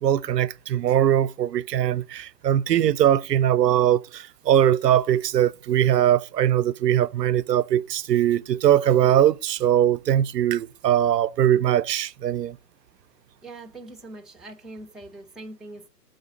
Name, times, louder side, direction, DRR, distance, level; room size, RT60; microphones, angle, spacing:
voice 1, 0.0-12.6, right 11 dB, 85° right, 0.6 m, -21 dB
voice 2, 13.4-15.9, right 2 dB, ahead, 0.4 m, -42 dB
10.5 x 3.9 x 5.0 m
hypercardioid pair, 170°, 47 cm